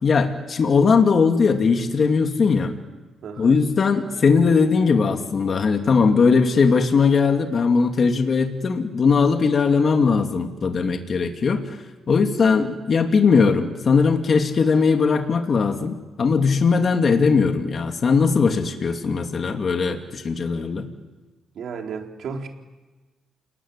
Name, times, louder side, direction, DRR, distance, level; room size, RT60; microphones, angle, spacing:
voice 1, 0.0-2.7 3.4-11.6 12.1-20.9, left 5 dB, 45° left, 4 dB, 2.5 m, -19 dB
voice 2, 3.2-3.6 21.5-22.5, right 5 dB, 65° right, 2 dB, 4.1 m, -33 dB
29.0 x 20.5 x 9.9 m, 1.2 s
cardioid pair, 90°, 0 cm